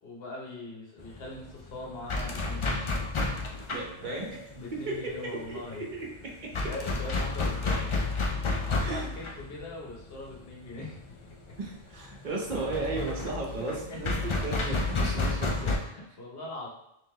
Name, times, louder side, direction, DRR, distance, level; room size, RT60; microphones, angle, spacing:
voice 1, 0.0-2.9 4.0-5.9 6.6-7.9 8.3-11.0 13.9-14.0 15.2-15.3 15.7-16.7, left 2 dB, 70° left, -3 dB, 1.1 m, -41 dB
sound 1, 1.0-15.8, left 3 dB, 50° left, 0.3 m, -32 dB
voice 2, 3.7-4.4 4.7-6.7 8.8-9.1 11.6-15.7, right 2 dB, 50° right, -2 dB, 1.0 m, -35 dB
3.8 x 2.8 x 3.2 m, 0.82 s
omnidirectional pair, 1.1 m